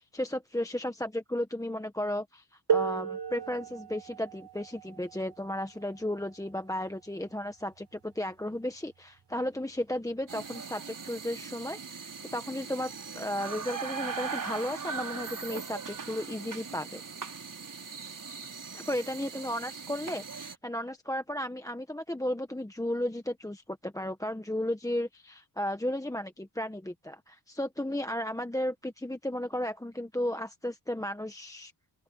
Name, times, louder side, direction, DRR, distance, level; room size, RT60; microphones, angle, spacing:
voice 1, 0.0-17.0 18.7-31.7, left 1 dB, 10° left, 1.3 m, -34 dB
sound 1, 2.7-8.1 9.2-9.3 10.1-10.3, right 7 dB, 70° right, 4.5 m, -35 dB
sound 2, 10.3-20.6, right 5 dB, 50° right, 5.0 m, -40 dB
open air
cardioid pair, 75°, 41 cm